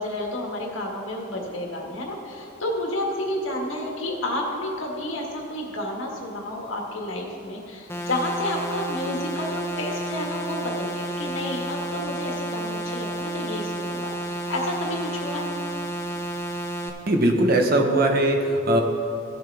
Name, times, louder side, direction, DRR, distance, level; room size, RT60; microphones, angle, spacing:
voice 1, 0.0-15.5, left 1 dB, 80° left, -1 dB, 1.7 m, -30 dB
sound 1, 7.9-16.9, right 1 dB, 15° left, 0.6 m, -31 dB
voice 2, 17.1-18.8, right 1 dB, 50° right, 3 dB, 1.0 m, -20 dB
16.0 x 6.9 x 3.5 m, 2.8 s
head